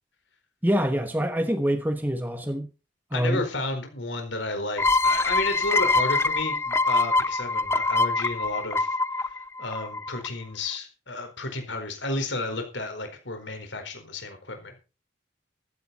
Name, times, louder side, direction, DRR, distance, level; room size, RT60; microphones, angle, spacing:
voice 1, 0.6-2.7 3.1-3.4, equal, 10° right, 1.1 m, -25 dB
voice 2, 3.1-9.0 9.6-14.8, left 2 dB, 75° left, 4.5 m, -32 dB
sound 1, 4.8-10.3, left 3 dB, 15° left, 0.5 m, -24 dB
15.5 x 11.0 x 4.2 m
head